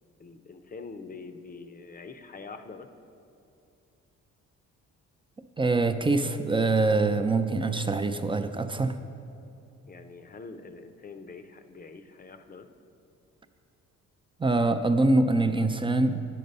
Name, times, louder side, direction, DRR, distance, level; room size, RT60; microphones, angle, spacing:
voice 1, 0.2-2.9 9.9-12.7, left 4 dB, 30° left, 9 dB, 0.6 m, -44 dB
voice 2, 5.6-9.0 14.4-16.2, right 2 dB, 15° right, 8 dB, 0.4 m, -24 dB
9.4 x 6.6 x 5.4 m, 2.6 s
cardioid pair, 90°, 30 cm